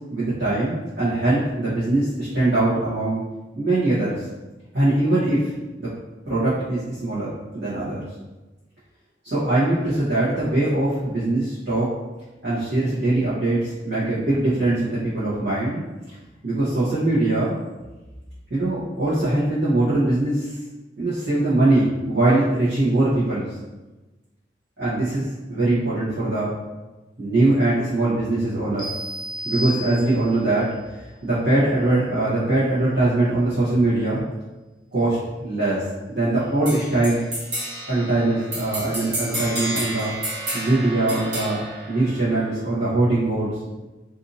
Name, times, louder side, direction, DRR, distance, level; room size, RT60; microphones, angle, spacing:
voice 1, 0.1-3.2 3.5-4.2 4.7-5.9 6.3-8.0 9.2-11.9 12.4-15.8 16.4-17.6 18.5-20.5 21.0-23.6 24.8-26.5 27.2-28.9 29.4-30.7 31.2-34.2 34.9-37.2 37.9-40.1 40.5-41.6 41.9-43.8, right 2 dB, 65° right, -13 dB, 1.1 m, -22 dB
sound 1, 28.8-30.5, equal, 25° left, 0.5 m, -32 dB
sound 2, 36.6-42.6, right 1 dB, 45° right, 1.0 m, -31 dB
2.6 x 2.6 x 2.7 m, 1.1 s
head